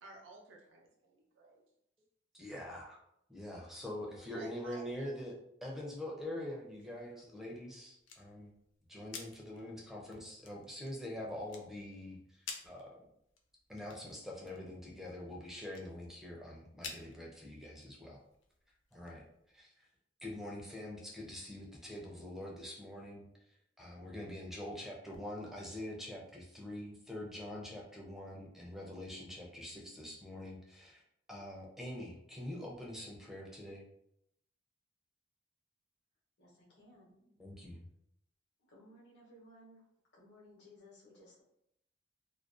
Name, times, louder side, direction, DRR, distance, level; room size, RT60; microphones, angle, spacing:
voice 1, 0.0-1.6 3.9-5.1, right 3 dB, 90° right, -1 dB, 0.5 m, -54 dB
voice 2, 2.3-3.0 3.3-8.5 8.9-13.0 13.7-18.2 18.9-19.2 19.5-19.9 20.2-23.3 23.8-31.0 31.3-33.9 37.4-37.8, left 1 dB, ahead, -2 dB, 0.4 m, -44 dB
sound 1, 6.6-19.6, left 5 dB, 80° left, 0.4 m, -53 dB
voice 3, 36.4-37.1 38.6-39.8 40.1-41.4, left 1 dB, 65° left, -5 dB, 0.8 m, -59 dB
2.4 x 2.1 x 2.4 m, 0.76 s
head